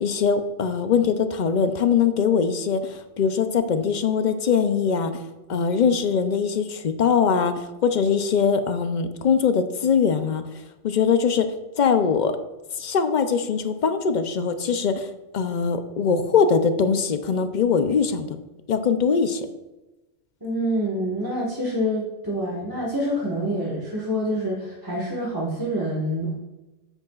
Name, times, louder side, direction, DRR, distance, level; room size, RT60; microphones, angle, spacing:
voice 1, 0.0-5.1 5.5-10.4 10.8-11.5 11.8-12.3 12.8-15.1 15.3-18.4 18.7-19.5, left 6 dB, 55° left, 9 dB, 0.6 m, -22 dB
voice 2, 20.4-26.4, equal, 20° right, -6 dB, 1.4 m, -27 dB
9.3 x 8.1 x 2.4 m, 1.0 s
omnidirectional pair, 1.1 m